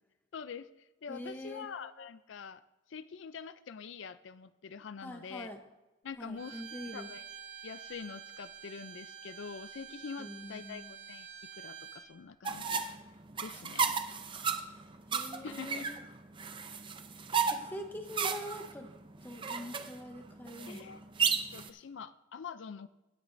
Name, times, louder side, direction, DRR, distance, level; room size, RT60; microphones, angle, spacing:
voice 1, 0.3-0.7 1.0-2.6 2.9-5.5 6.0-6.6 6.9-7.2 7.6-12.8 13.4-14.0 15.4-15.8 20.7-21.0 21.5-22.9, left 6 dB, 65° left, 14 dB, 0.4 m, -45 dB
voice 2, 1.1-1.7 5.0-5.6 6.2-7.1 10.2-11.0 14.3-14.6 15.1-16.0 17.5-18.9 19.2-20.9, left 1 dB, 10° left, 4 dB, 0.7 m, -44 dB
Bowed string instrument, 6.4-12.1, right 8 dB, 65° right, 1.3 m, -48 dB
sound 1, 12.4-21.7, right 6 dB, 25° right, 0.5 m, -34 dB
16.5 x 9.9 x 2.6 m, 1.0 s
head